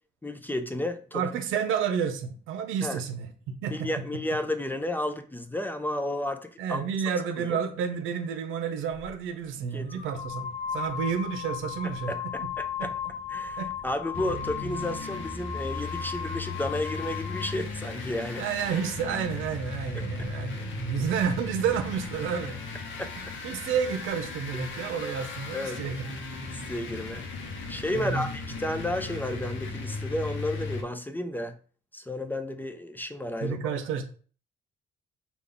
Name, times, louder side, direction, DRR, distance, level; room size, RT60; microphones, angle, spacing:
voice 1, 0.2-1.2 2.8-3.0 3.7-6.9 7.4-7.6 9.7-9.9 12.1-12.9 13.3-18.5 19.9-20.0 23.0-23.1 25.5-25.8 26.5-27.2 27.7-31.6 31.9-33.6, left 1 dB, 10° left, 0.4 m, -32 dB
voice 2, 1.1-3.9 6.6-12.1 12.4-12.5 13.6-13.7 18.4-22.6 23.4-26.2 27.9-28.2 33.4-34.0, right 7 dB, 90° right, 0.6 m, -30 dB
sound 1, 8.9-9.1 9.9-17.6, left 8 dB, 30° left, 0.8 m, -36 dB
sound 2, 14.1-30.8, left 3 dB, 75° left, 0.8 m, -37 dB
3.4 x 2.4 x 3.8 m
cardioid pair, 90°, 20 cm